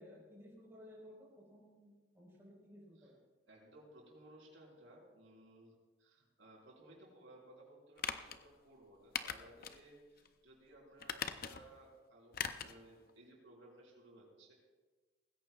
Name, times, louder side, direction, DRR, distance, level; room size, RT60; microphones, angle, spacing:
voice 1, 0.0-3.1, left 1 dB, 15° right, -5 dB, 4.6 m, -57 dB
voice 2, 3.4-14.5, right 1 dB, 75° right, -3 dB, 5.0 m, -60 dB
sound 1, 8.0-8.4 9.1-9.8 10.2-10.3 11.0-11.7 12.3-12.8 13.1-13.2, left 7 dB, 45° left, 0.6 m, -41 dB
19.5 x 16.5 x 2.4 m, 1.3 s
head